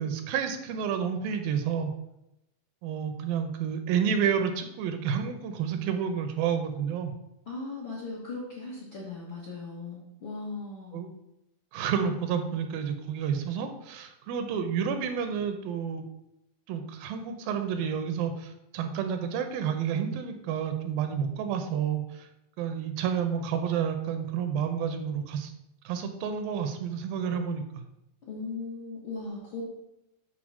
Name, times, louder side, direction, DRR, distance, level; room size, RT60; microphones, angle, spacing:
voice 1, 0.0-1.9 2.8-7.1 10.9-11.1 11.7-16.0 16.7-22.3 22.6-25.5 25.9-27.8, right 7 dB, 80° right, 7 dB, 2.3 m, -30 dB
voice 2, 7.5-11.0 28.3-29.6, left 3 dB, 60° left, -5 dB, 1.3 m, -38 dB
7.8 x 3.9 x 6.1 m, 0.86 s
omnidirectional pair, 4.3 m